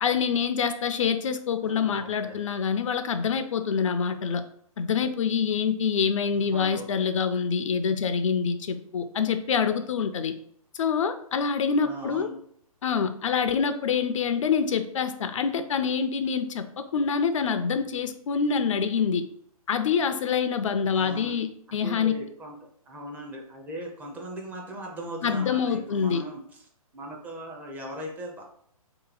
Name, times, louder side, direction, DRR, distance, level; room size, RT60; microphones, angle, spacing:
voice 1, 0.0-4.4 4.8-10.3 10.7-12.3 12.8-19.2 19.7-22.1 25.2-26.2, left 6 dB, 60° left, 9 dB, 0.4 m, -26 dB
voice 2, 1.6-2.4 6.4-7.1 11.8-12.3 21.0-21.3 21.7-22.6 22.9-26.6 26.9-28.4, right 1 dB, 10° right, -1 dB, 0.4 m, -39 dB
2.9 x 2.6 x 3.9 m, 0.64 s
figure-of-eight pair, 135°, 19 cm